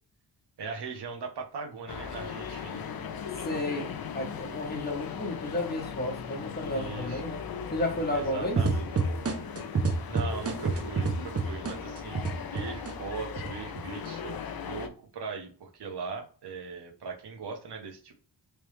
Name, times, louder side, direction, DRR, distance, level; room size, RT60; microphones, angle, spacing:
voice 1, 0.6-2.8 6.7-7.2 8.1-8.9 10.1-18.1, right 4 dB, 70° right, 2 dB, 0.9 m, -39 dB
sound 1, 1.9-14.9, left 7 dB, 60° left, 0.5 m, -38 dB
voice 2, 3.4-3.9 4.1-7.4 7.7-8.6, left 1 dB, 25° left, 0 dB, 0.9 m, -32 dB
sound 2, 8.6-12.9 13.4-14.1, right 4 dB, 35° right, 0.6 m, -28 dB
3.3 x 3.0 x 3.1 m, 0.41 s
wide cardioid pair, 120°, 41 cm